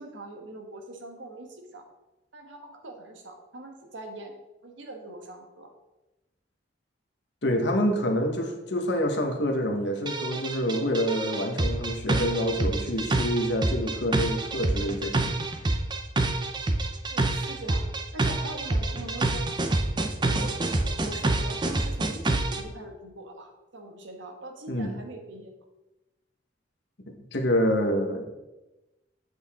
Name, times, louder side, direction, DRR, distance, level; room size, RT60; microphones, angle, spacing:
voice 1, 0.0-1.9 2.3-4.3 4.6-5.7 17.1-17.9 18.1-19.5 20.2-25.6, right 2 dB, 80° right, 3 dB, 1.3 m, -42 dB
voice 2, 7.4-15.3 24.7-24.9 27.3-28.3, equal, 65° left, 3 dB, 1.2 m, -27 dB
sound 1, 10.1-22.6, right 2 dB, 25° right, 0.5 m, -27 dB
7.9 x 6.7 x 3.6 m, 1.0 s
head